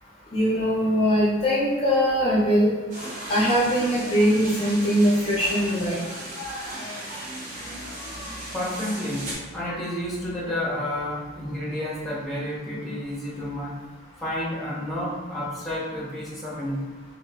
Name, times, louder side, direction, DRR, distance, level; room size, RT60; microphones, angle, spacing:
voice 1, 0.3-2.7 3.3-6.0, equal, 30° left, -7 dB, 0.6 m, -21 dB
sound 1, 2.9-9.3, right 1 dB, 40° right, 0.9 m, -36 dB
voice 2, 7.5-13.8 14.2-17.0, left 1 dB, ahead, -7 dB, 0.9 m, -31 dB
3.1 x 2.6 x 3.6 m, 1.3 s
head